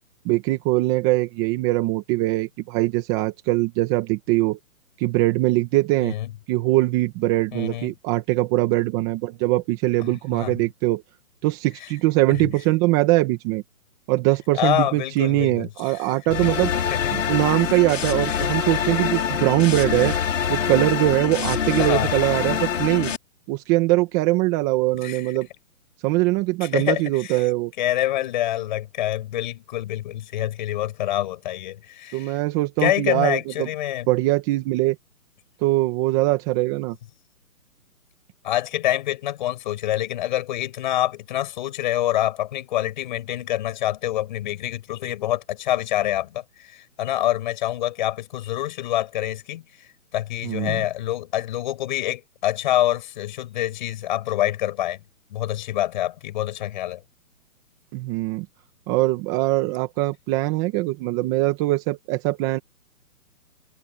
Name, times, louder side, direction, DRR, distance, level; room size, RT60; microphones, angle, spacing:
voice 1, 0.3-4.6 5.0-6.1 6.5-11.0 11.4-13.6 14.1-16.7 17.1-20.2 20.5-23.1 23.5-25.5 26.0-27.7 32.1-33.7 34.1-35.0 35.6-37.0 50.4-50.8 57.9-58.5 58.9-62.6, right 19 dB, 15° right, 1.8 m, -22 dB
voice 2, 7.5-7.9 10.3-10.6 11.8-11.9 12.3-12.4 14.5-16.1 16.4-16.5 16.9-17.1 17.5-17.8 18.3-18.5 19.4-19.5 21.8-22.1 25.0-25.3 26.6-27.5 27.8-32.4 32.8-34.1 38.4-55.0 55.3-57.0, left 13 dB, 30° left, 6.2 m, -26 dB
sound 1, 16.3-23.2, left 8 dB, 55° left, 6.7 m, -25 dB
hypercardioid pair, 170°, 44 cm